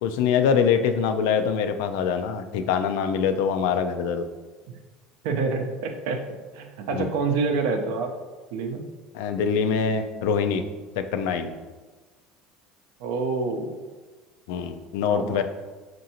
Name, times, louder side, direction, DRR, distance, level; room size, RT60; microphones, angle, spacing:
voice 1, 0.0-4.3 6.9-7.1 9.1-10.6 11.0-11.5 14.5-15.4, left 6 dB, 80° left, 8 dB, 0.3 m, -24 dB
voice 2, 5.2-6.2 6.5-8.1 8.5-8.9 13.0-13.8 15.0-15.4, right 4 dB, 75° right, 4 dB, 0.5 m, -27 dB
5.4 x 2.6 x 2.8 m, 1.3 s
supercardioid pair, 105°, 0 cm